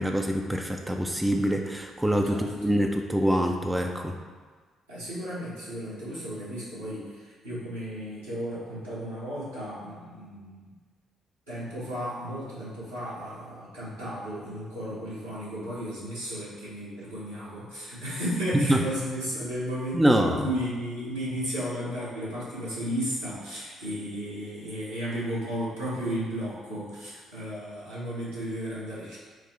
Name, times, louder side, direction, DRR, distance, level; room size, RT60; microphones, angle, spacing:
voice 1, 0.0-4.2 18.5-18.8 19.9-20.5, equal, 10° right, 3 dB, 0.4 m, -25 dB
voice 2, 2.3-2.7 4.9-10.7 11.5-29.2, equal, 85° right, -12 dB, 1.4 m, -34 dB
4.8 x 2.1 x 4.2 m, 1.5 s
figure-of-eight pair, 45°, 0 cm